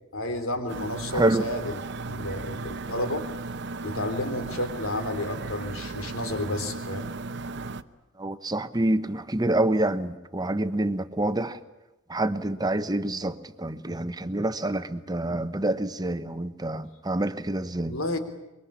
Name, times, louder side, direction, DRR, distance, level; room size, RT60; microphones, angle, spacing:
voice 1, 0.1-3.3 3.8-7.1 17.9-18.2, left 1 dB, 90° left, 3.4 m, -31 dB
sound 1, 0.7-7.8, right 3 dB, 60° right, 0.9 m, -36 dB
voice 2, 1.1-1.5 8.2-11.6 12.1-18.0, right 1 dB, 20° right, 1.1 m, -27 dB
25.0 x 23.0 x 8.5 m
head